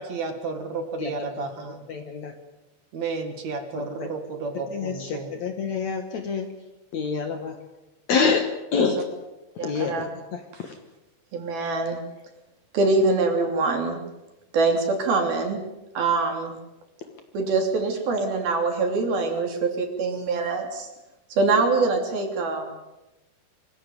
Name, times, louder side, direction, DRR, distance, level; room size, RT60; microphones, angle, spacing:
voice 1, 0.0-1.9 2.9-5.4, right 4 dB, 50° right, 6 dB, 2.8 m, -32 dB
voice 2, 1.0-1.4 1.9-2.3 3.8-4.1 4.7-6.5 6.9-7.6 8.1-8.5 8.7-9.0 9.6-10.8 17.1-17.2, left 5 dB, 55° left, 6 dB, 2.3 m, -27 dB
voice 3, 9.6-10.0 11.3-12.0 12.7-14.0 14.5-15.6 15.9-16.5 17.3-20.9 21.3-22.7, right 3 dB, 70° right, 4 dB, 4.9 m, -24 dB
24.0 x 15.5 x 9.4 m, 1.0 s
omnidirectional pair, 4.6 m